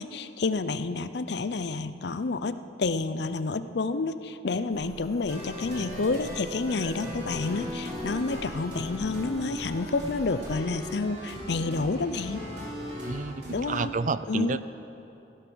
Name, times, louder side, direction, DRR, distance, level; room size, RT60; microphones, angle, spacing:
voice 1, 0.0-12.5 13.5-13.9 14.3-14.6, left 3 dB, 60° left, 12 dB, 0.5 m, -29 dB
sound 1, 4.7-10.6, left 1 dB, 20° left, 0.6 m, -48 dB
sound 2, 5.3-13.8, left 1 dB, 60° right, 3.3 m, -38 dB
voice 2, 13.0-14.6, right 4 dB, 40° right, 14 dB, 0.4 m, -30 dB
16.0 x 12.5 x 6.2 m, 3.0 s
head